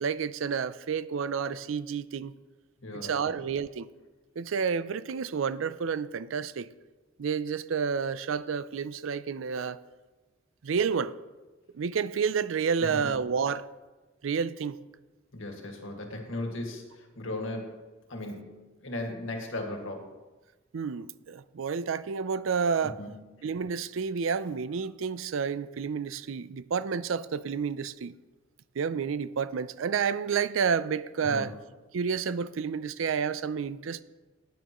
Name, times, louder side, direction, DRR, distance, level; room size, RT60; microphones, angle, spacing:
voice 1, 0.0-2.3 2.9-3.9 4.4-6.7 7.2-9.8 10.6-11.2 11.7-13.7 14.2-14.8 20.7-23.0 23.4-28.2 28.8-31.5 31.9-34.0, right 6 dB, 90° right, 16 dB, 0.4 m, -30 dB
voice 2, 2.8-3.4 12.8-13.2 15.3-17.8 18.1-20.1 22.8-23.2 31.2-31.5, left 1 dB, 90° left, 2 dB, 1.9 m, -37 dB
16.0 x 9.5 x 3.0 m, 1.2 s
head